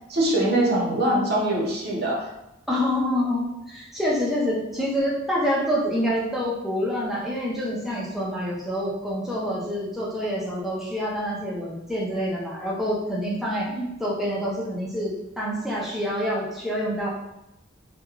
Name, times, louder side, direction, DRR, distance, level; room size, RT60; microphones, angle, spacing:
voice 1, 0.1-2.3 13.7-13.9, right 1 dB, 55° right, -3 dB, 0.6 m, -23 dB
voice 2, 2.7-13.7 14.0-17.1, equal, ahead, -6 dB, 0.5 m, -27 dB
2.9 x 2.3 x 2.3 m, 0.89 s
head